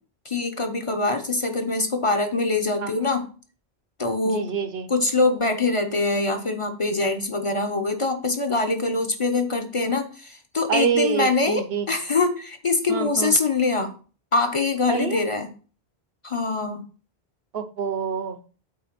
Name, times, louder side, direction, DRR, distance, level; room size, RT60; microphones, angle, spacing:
voice 1, 0.2-3.3 4.0-4.5 4.9-13.9 14.3-15.5 16.2-16.8, left 3 dB, 35° left, 5 dB, 0.8 m, -24 dB
voice 2, 4.2-4.9 10.7-11.9 12.9-13.4 14.9-15.2 17.5-18.4, right 6 dB, 75° right, 10 dB, 1.0 m, -26 dB
8.7 x 3.4 x 5.9 m, 0.37 s
omnidirectional pair, 1.1 m